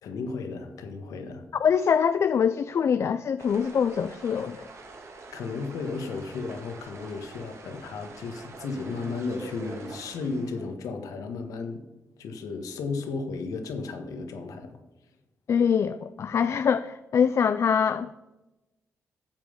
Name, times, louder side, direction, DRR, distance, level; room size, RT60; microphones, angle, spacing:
voice 1, 0.0-1.5 5.3-11.8 12.2-14.8, left 4 dB, 90° left, 6 dB, 1.6 m, -34 dB
voice 2, 1.6-4.6 15.5-18.1, left 7 dB, 55° left, 12 dB, 0.4 m, -24 dB
sound 1, 3.4-10.7, right 3 dB, 55° right, 2.0 m, -45 dB
13.0 x 7.7 x 5.2 m, 1.0 s
cardioid pair, 90°, 6 cm